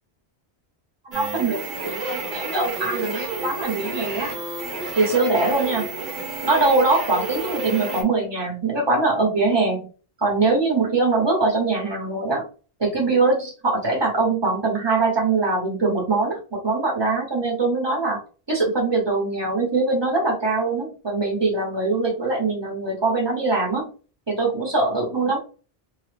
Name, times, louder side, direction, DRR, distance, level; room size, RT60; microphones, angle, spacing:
voice 1, 1.0-4.3 5.0-5.9 6.4-9.9 10.2-12.5 12.8-18.2 18.5-23.9 24.3-25.4, right 3 dB, 25° right, -1 dB, 1.1 m, -22 dB
sound 1, 1.1-8.0, right 3 dB, 55° right, 0.9 m, -31 dB
2.9 x 2.3 x 3.3 m, 0.37 s
omnidirectional pair, 1.0 m